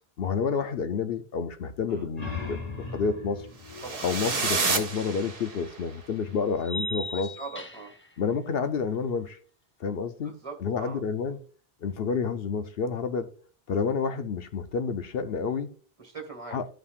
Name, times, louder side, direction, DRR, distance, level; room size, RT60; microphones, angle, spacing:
voice 1, 0.2-3.5 4.0-7.3 8.2-9.4 9.8-11.4 11.8-13.3 13.7-15.7 16.5-16.7, left 5 dB, 70° left, 0.8 m, -29 dB
sound 1, 1.9-5.3, left 4 dB, 40° left, 1.8 m, -39 dB
sound 2, 3.7-5.8, right 4 dB, 60° right, 1.4 m, -29 dB
voice 2, 3.8-4.3 7.1-7.9 10.2-11.0 16.0-16.6, right 4 dB, 30° right, 1.9 m, -41 dB
sound 3, 5.0-5.1 6.6-8.1, equal, 20° left, 0.4 m, -36 dB
14.0 x 5.6 x 2.4 m
omnidirectional pair, 1.1 m